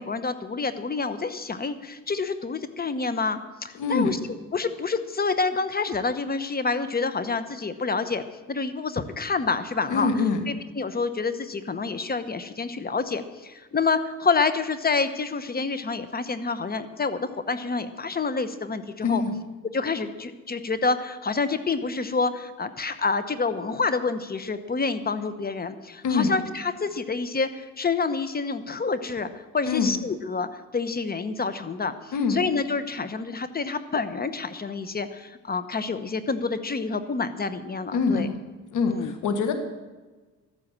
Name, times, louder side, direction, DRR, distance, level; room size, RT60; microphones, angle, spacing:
voice 1, 0.0-4.2 4.5-8.2 8.5-10.1 10.5-19.2 19.7-38.3 38.9-39.1, left 4 dB, 30° left, 11 dB, 0.9 m, -28 dB
voice 2, 3.7-4.2 9.9-10.4 19.0-19.3 26.0-26.3 29.7-29.9 32.1-32.4 37.9-38.4 38.7-39.5, left 4 dB, 85° left, 6 dB, 1.5 m, -24 dB
12.5 x 9.6 x 7.4 m, 1.2 s
cardioid pair, 90°, 30 cm